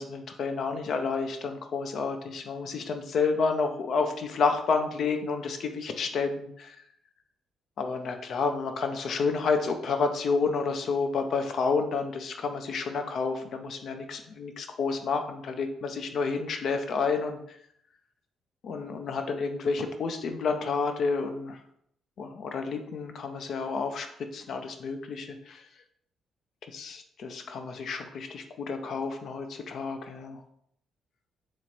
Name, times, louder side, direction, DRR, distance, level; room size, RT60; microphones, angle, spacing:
voice 1, 0.0-6.8 7.8-17.6 18.6-21.6 22.2-25.7 26.7-30.4, left 4 dB, 65° left, 6 dB, 0.4 m, -30 dB
3.0 x 3.0 x 4.2 m, 0.71 s
cardioid pair, 90°, 0 cm